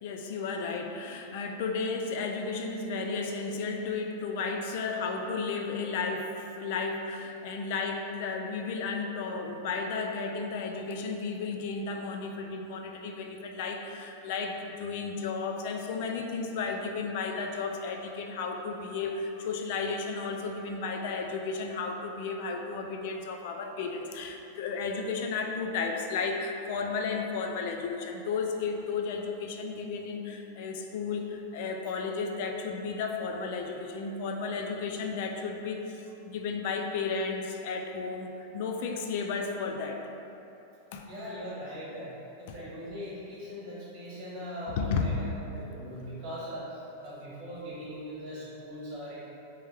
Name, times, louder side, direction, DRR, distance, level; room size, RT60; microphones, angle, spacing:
voice 1, 0.0-36.0 36.3-40.0 40.9-41.1 42.5-42.6 44.7-45.1, left 4 dB, 50° left, 3 dB, 0.3 m, -33 dB
voice 2, 41.1-42.1 42.4-49.2, equal, 45° right, -8 dB, 1.1 m, -40 dB
3.5 x 3.0 x 3.2 m, 2.9 s
supercardioid pair, 165°, 0 cm